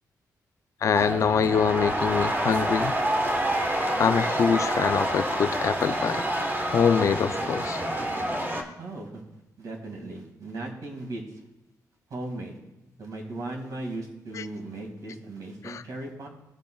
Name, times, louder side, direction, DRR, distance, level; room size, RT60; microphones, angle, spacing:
voice 1, 0.8-2.9 4.0-6.2 6.7-7.8 14.3-14.4 15.6-15.8, left 7 dB, 50° left, 11 dB, 0.4 m, -24 dB
sound 1, 0.9-8.6, right 1 dB, 30° right, 1.1 m, -27 dB
voice 2, 8.8-9.2 9.6-11.2 12.1-12.6 13.0-16.3, right 2 dB, 65° right, 1 dB, 2.0 m, -37 dB
14.5 x 5.4 x 2.3 m, 0.95 s
cardioid pair, 110°, 7 cm